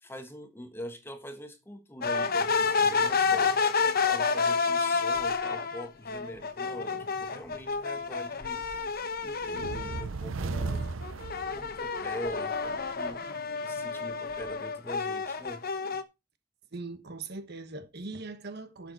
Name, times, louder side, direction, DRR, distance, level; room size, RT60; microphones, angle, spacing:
voice 1, 0.0-3.6 4.0-8.6 9.2-10.9 11.5-13.3 13.6-15.6, equal, 10° left, 1.3 m, -43 dB
sound 1, 2.0-10.1 10.5-16.0, left 5 dB, 50° left, 1.0 m, -29 dB
sound 2, 9.4-12.2, right 3 dB, 90° right, 0.7 m, -35 dB
voice 2, 16.7-18.9, right 3 dB, 55° right, 1.4 m, -40 dB
11.5 x 6.7 x 4.2 m
head